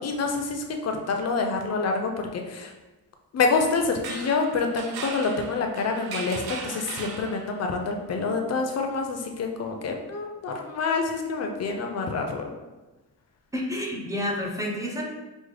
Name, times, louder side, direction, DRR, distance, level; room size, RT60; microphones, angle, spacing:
voice 1, 0.0-2.7 3.3-12.5, left 4 dB, 45° left, 3 dB, 0.4 m, -27 dB
sound 1, 3.9-7.8, right 4 dB, 85° right, 0.6 m, -37 dB
voice 2, 13.5-15.0, left 1 dB, 10° right, -1 dB, 0.4 m, -29 dB
5.1 x 2.1 x 3.2 m, 1.1 s
wide cardioid pair, 180°, 36 cm